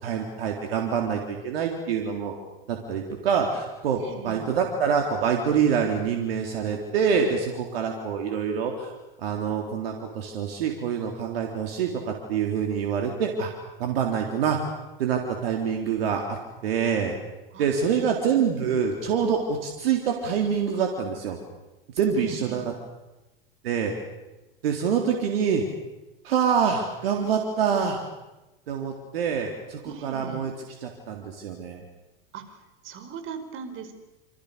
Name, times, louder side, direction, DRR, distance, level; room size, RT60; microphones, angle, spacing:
voice 1, 0.0-2.3 2.7-4.0 4.2-8.9 9.2-13.5 13.8-14.6 15.0-16.4 16.6-17.2 17.6-21.4 21.9-22.7 23.6-23.9 24.6-25.6 26.2-28.0 28.7-30.5 30.8-31.8, right 7 dB, 80° right, 2 dB, 3.7 m, -26 dB
voice 2, 4.0-4.4 17.5-17.9 22.2-22.7 29.8-30.5 32.3-32.6 32.8-33.9, right 6 dB, 45° right, 9 dB, 5.2 m, -39 dB
27.5 x 27.0 x 6.9 m, 1.1 s
hypercardioid pair, 100°, 29 cm